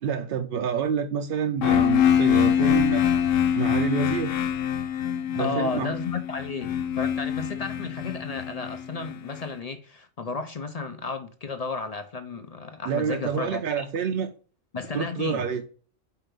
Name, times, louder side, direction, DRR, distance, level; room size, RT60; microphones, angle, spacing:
voice 1, 0.0-3.0 3.5-4.4 5.3-5.9 12.9-14.3 14.9-15.6, right 7 dB, 60° right, 0.7 m, -28 dB
sound 1, 1.6-9.4, left 9 dB, 80° left, 1.0 m, -24 dB
voice 2, 5.4-13.9 14.7-15.5, left 4 dB, 50° left, 0.4 m, -33 dB
4.7 x 4.5 x 5.0 m
omnidirectional pair, 1.3 m